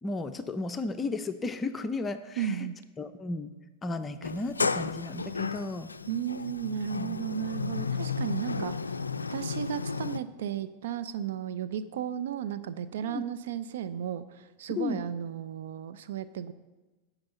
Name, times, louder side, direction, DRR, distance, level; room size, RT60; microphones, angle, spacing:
voice 1, 0.0-2.7 3.0-3.5 3.8-5.9 6.9-7.2 13.0-13.2 14.8-15.0, left 3 dB, 20° left, 8 dB, 0.6 m, -34 dB
voice 2, 2.4-2.8 6.1-8.7 9.3-16.5, right 9 dB, 65° right, 12 dB, 0.4 m, -34 dB
Sliding door, 4.2-10.2, left 4 dB, 90° left, 0.3 m, -33 dB
8.8 x 5.9 x 7.9 m, 1.1 s
hypercardioid pair, 95°, 0 cm